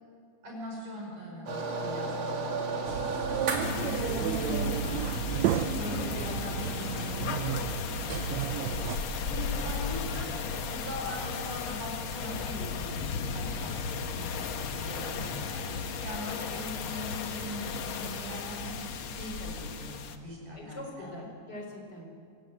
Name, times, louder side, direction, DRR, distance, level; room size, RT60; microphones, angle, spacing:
voice 1, 0.4-21.1, equal, 70° right, -1 dB, 7.1 m, -41 dB
sound 1, 1.5-7.1, right 2 dB, 50° right, 3.5 m, -35 dB
sound 2, 2.9-9.0, right 11 dB, 85° right, 1.5 m, -32 dB
sound 3, 3.6-20.2, left 5 dB, 70° left, 1.2 m, -35 dB
voice 2, 20.5-22.1, left 1 dB, 30° left, 1 dB, 4.3 m, -43 dB
25.0 x 17.0 x 7.8 m, 2.4 s
omnidirectional pair, 3.9 m